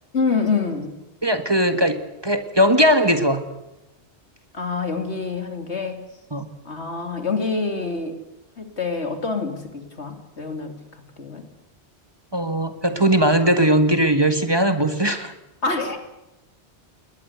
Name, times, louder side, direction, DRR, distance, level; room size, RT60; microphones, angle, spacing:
voice 1, 0.1-1.0 4.5-6.1 6.6-8.2 8.6-10.7 11.2-11.4 15.6-16.0, left 4 dB, 75° left, 6 dB, 3.2 m, -26 dB
voice 2, 1.2-2.0 2.2-3.4 6.3-6.5 12.3-15.3, equal, 20° right, 8 dB, 1.7 m, -19 dB
21.0 x 20.5 x 8.2 m, 0.97 s
omnidirectional pair, 1.1 m